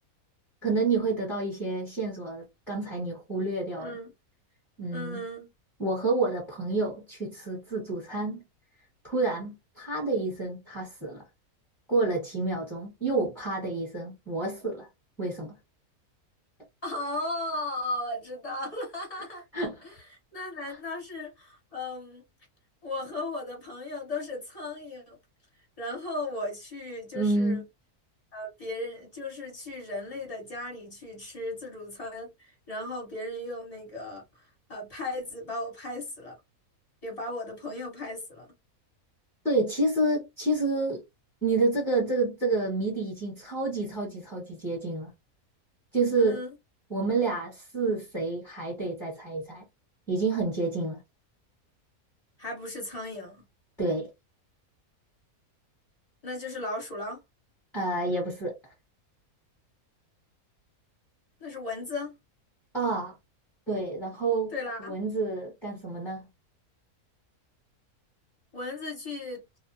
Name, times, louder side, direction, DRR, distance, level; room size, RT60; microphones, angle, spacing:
voice 1, 0.6-3.9 4.8-5.2 5.8-8.4 9.0-11.2 11.9-14.9 15.2-15.6 19.5-19.8 20.6-20.8 27.1-27.6 39.4-41.0 41.4-45.1 45.9-46.4 46.9-49.7 50.1-51.0 53.8-54.1 57.7-58.7 62.7-63.1 63.7-64.5 64.8-66.3, right 3 dB, ahead, 0.8 m, -29 dB
voice 2, 3.7-4.1 4.9-5.5 16.8-19.4 19.8-19.9 20.3-22.2 22.8-25.2 25.8-27.6 28.3-36.4 37.0-38.5 46.2-46.5 52.4-53.4 56.2-57.2 61.4-62.2 64.5-65.0 68.5-69.4, left 2 dB, 25° left, 1.1 m, -36 dB
2.8 x 2.1 x 2.5 m
omnidirectional pair, 1.5 m